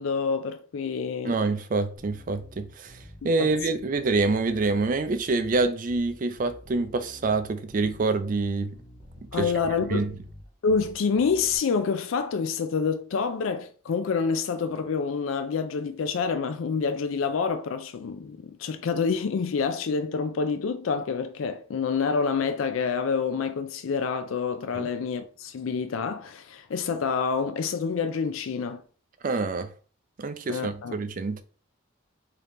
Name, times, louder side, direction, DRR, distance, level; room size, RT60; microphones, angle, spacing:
voice 1, 0.0-1.3 3.2-3.5 9.3-10.1 10.6-28.8 30.5-30.9, left 5 dB, 90° left, 0.4 m, -27 dB
voice 2, 1.2-3.0 3.2-8.7 9.4-9.5 9.9-10.1 24.7-24.9 29.2-29.7 30.2-31.4, right 3 dB, 45° right, 0.4 m, -26 dB
Bass guitar, 2.0-11.6, left 1 dB, 40° left, 0.9 m, -49 dB
3.7 x 2.9 x 3.5 m
head